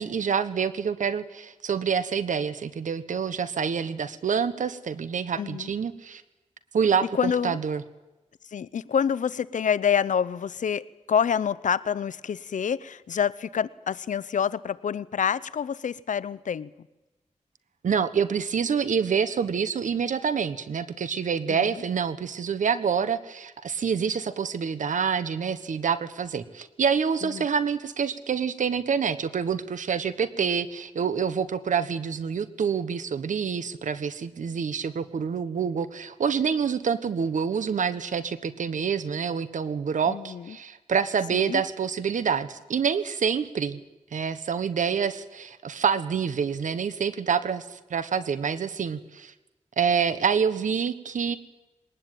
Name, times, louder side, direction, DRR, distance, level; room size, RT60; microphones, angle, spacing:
voice 1, 0.0-6.2 6.7-7.8 17.8-43.8 44.1-49.3 49.8-51.4, right 6 dB, 90° right, 13 dB, 1.4 m, -27 dB
voice 2, 5.4-5.7 7.1-7.6 8.5-16.7 21.5-21.8 27.2-27.5 40.1-40.6 41.3-41.6, left 7 dB, 85° left, 19 dB, 0.7 m, -27 dB
21.5 x 19.5 x 9.2 m, 1.0 s
cardioid pair, 65°, 13 cm